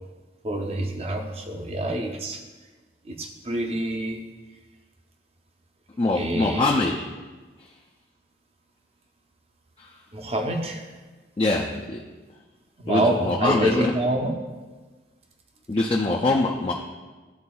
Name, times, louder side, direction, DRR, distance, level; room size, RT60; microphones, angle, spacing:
voice 1, 0.4-2.4 3.0-4.2 6.1-6.7 10.1-10.9 12.8-14.3, right 1 dB, 35° right, 3 dB, 0.6 m, -26 dB
voice 2, 6.0-7.0 7.6-7.7 9.8-9.9 11.4-12.0 12.9-13.9 15.7-16.7, left 2 dB, 30° left, -1 dB, 0.3 m, -24 dB
11.0 x 3.9 x 2.3 m, 1.3 s
head